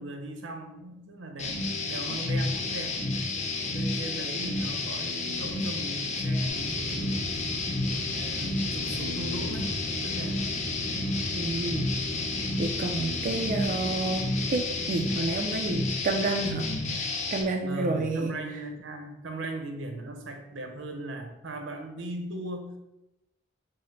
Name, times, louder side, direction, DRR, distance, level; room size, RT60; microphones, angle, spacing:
voice 1, 0.0-3.0 3.7-7.3 8.1-10.4 17.6-22.8, right 2 dB, 80° right, 4 dB, 0.7 m, -38 dB
sound 1, 1.4-17.4, left 2 dB, 35° left, 0.5 m, -31 dB
sound 2, 6.5-16.3, right 1 dB, 70° left, 1.2 m, -39 dB
voice 2, 11.4-11.9 12.6-16.7 16.9-18.3, right 3 dB, 45° right, 2 dB, 0.3 m, -30 dB
4.8 x 2.0 x 4.4 m, 0.93 s
head